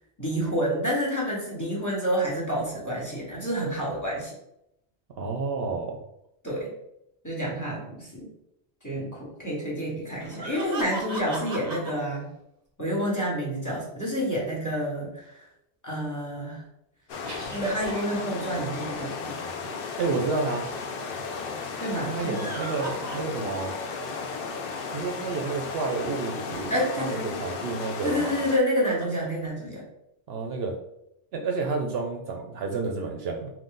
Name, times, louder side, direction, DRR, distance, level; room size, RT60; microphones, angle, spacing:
voice 1, 0.2-4.3 6.4-6.7 7.2-8.3 8.8-12.3 12.8-15.5 15.8-16.6 17.5-19.3 21.8-22.5 26.7-27.4 28.0-29.8, equal, 15° left, -4 dB, 1.1 m, -29 dB
voice 2, 5.2-6.0 20.0-20.7 22.0-23.7 24.9-28.4 30.3-30.8 31.3-33.5, right 4 dB, 65° right, 2 dB, 0.8 m, -30 dB
sound 1, 10.2-11.9 17.2-19.3 22.1-23.7 24.1-24.2 26.5-26.6 28.4-29.5, right 2 dB, 40° right, 0.9 m, -37 dB
sound 2, 17.1-28.6, left 4 dB, 60° left, 0.7 m, -35 dB
3.8 x 2.6 x 3.7 m, 0.81 s
omnidirectional pair, 1.2 m